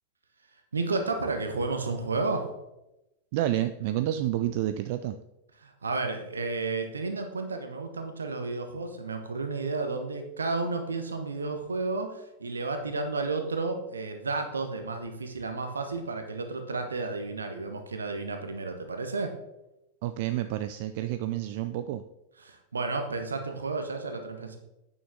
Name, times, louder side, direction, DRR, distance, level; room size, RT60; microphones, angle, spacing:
voice 1, 0.7-2.5 5.6-19.4 22.4-24.6, right 3 dB, 75° right, 6 dB, 1.1 m, -32 dB
voice 2, 3.3-5.1 20.0-22.0, right 13 dB, 50° right, 10 dB, 0.3 m, -29 dB
8.7 x 6.4 x 3.6 m, 0.92 s
figure-of-eight pair, 90°, 0 cm